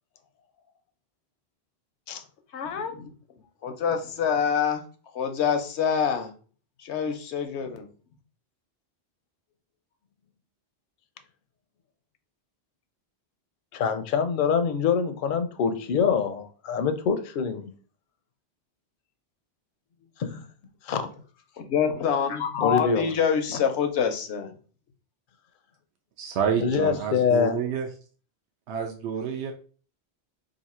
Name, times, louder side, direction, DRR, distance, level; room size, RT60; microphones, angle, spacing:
voice 1, 2.5-3.1 3.6-4.8 5.1-6.3 6.8-7.9 21.6-24.5, left 7 dB, 85° left, 1.0 m, -26 dB
voice 2, 13.7-17.7 20.2-20.5 20.8-21.1 22.6-23.1 26.6-27.6, left 6 dB, 60° left, 0.6 m, -25 dB
voice 3, 26.2-27.9 28.7-29.5, right 7 dB, 80° right, 0.9 m, -28 dB
2.8 x 2.6 x 4.2 m
omnidirectional pair, 1.1 m